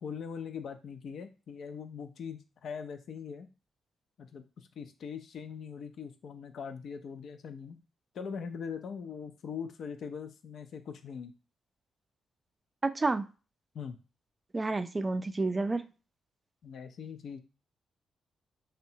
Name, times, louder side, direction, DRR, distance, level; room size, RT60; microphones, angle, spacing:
voice 1, 0.0-3.5 4.2-7.8 8.1-11.3 13.7-14.0 16.6-17.4, left 6 dB, 70° left, 0.3 m, -41 dB
voice 2, 12.8-13.3 14.5-15.9, right 3 dB, 30° right, 0.3 m, -30 dB
2.7 x 2.1 x 2.7 m
supercardioid pair, 50°, 0 cm